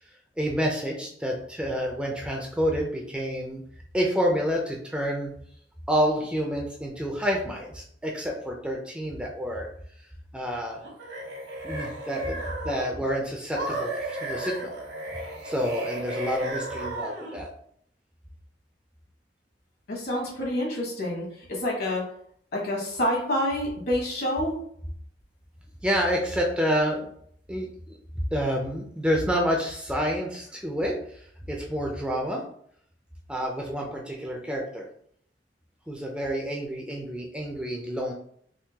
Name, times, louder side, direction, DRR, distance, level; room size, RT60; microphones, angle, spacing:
voice 1, 0.4-3.6 3.9-5.3 5.9-9.7 10.3-10.8 11.6-14.7 15.4-17.5 25.8-27.1 27.5-28.0 28.3-31.0 31.5-32.4 33.3-34.9 35.9-38.1, equal, 5° right, 0 dB, 0.4 m, -28 dB
sound 1, 10.8-13.0 13.5-17.4, right 1 dB, 80° right, 1.2 m, -34 dB
voice 2, 19.9-22.0 22.5-24.6, left 1 dB, 60° left, -2 dB, 1.3 m, -28 dB
3.6 x 2.5 x 2.8 m, 0.66 s
head